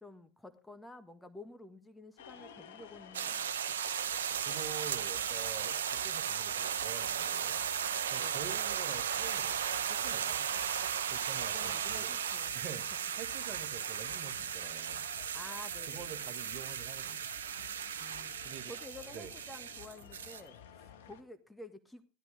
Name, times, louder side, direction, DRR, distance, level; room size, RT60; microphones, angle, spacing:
voice 1, 0.0-3.5 8.2-8.5 11.4-12.6 15.3-16.3 17.9-22.0, left 1 dB, 10° left, 10 dB, 1.7 m, -51 dB
sound 1, 2.2-21.2, left 8 dB, 70° left, 1.7 m, -54 dB
sound 2, 3.1-20.4, right 8 dB, 80° right, 0.8 m, -36 dB
voice 2, 4.4-7.6 8.1-10.5 11.1-12.2 12.5-12.9 13.2-15.1 15.9-17.3 18.4-18.7 19.1-19.3, right 9 dB, 50° right, 9 dB, 1.8 m, -47 dB
15.5 x 12.5 x 3.5 m, 0.32 s
hypercardioid pair, 75°, 0 cm